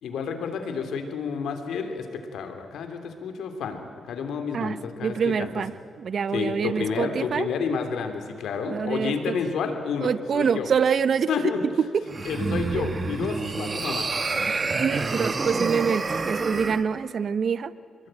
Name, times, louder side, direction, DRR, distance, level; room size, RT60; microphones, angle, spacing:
voice 1, 0.0-5.5 6.3-10.7 11.3-11.6 12.2-14.1, left 6 dB, 85° left, 7 dB, 3.2 m, -30 dB
voice 2, 5.0-5.7 6.0-7.5 8.7-9.4 10.0-11.3 11.8-12.0 14.5-17.7, right 6 dB, 60° right, 15 dB, 0.9 m, -26 dB
sound 1, 12.0-16.8, right 3 dB, 35° right, 1.8 m, -28 dB
25.5 x 22.0 x 9.1 m, 2.3 s
cardioid pair, 95°, 0 cm